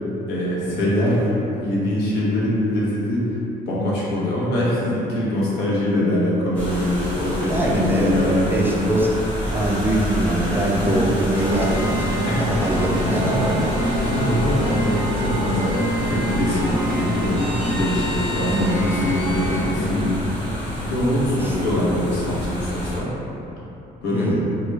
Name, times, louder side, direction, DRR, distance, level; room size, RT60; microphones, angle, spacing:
voice 1, 0.3-3.3 3.7-8.9 10.8-11.1 12.2-12.5 13.1-13.4 13.9-20.0 20.6-23.1 24.0-24.3, left 1 dB, 85° left, -6 dB, 0.9 m, -23 dB
sound 1, 6.5-23.0, equal, 10° left, 1.3 m, -29 dB
voice 2, 7.5-9.1 9.5-13.5 18.5-18.8 19.8-20.1 21.4-21.5 24.1-24.4, right 1 dB, 10° right, -4 dB, 0.4 m, -23 dB
sound 2, 11.3-19.6, equal, 40° left, 1.2 m, -26 dB
3.2 x 2.3 x 3.2 m, 2.9 s
cardioid pair, 110°, 17 cm